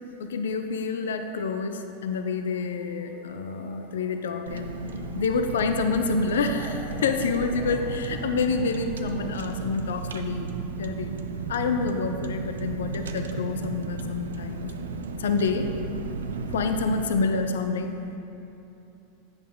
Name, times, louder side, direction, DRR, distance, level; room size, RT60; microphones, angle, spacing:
voice 1, 0.2-4.8 5.1-10.5 10.8-11.1 11.5-14.7 15.2-15.7 16.5-17.9, left 4 dB, 75° left, 7 dB, 0.4 m, -27 dB
Motor vehicle (road) / Siren, 1.0-14.0 14.2-15.4 16.1-16.2 16.4-16.5, equal, 5° left, 1.7 m, -51 dB
Car, 4.5-17.1, right 4 dB, 80° right, 0.4 m, -34 dB
8.3 x 6.1 x 3.6 m, 2.9 s
hypercardioid pair, 90°, 0 cm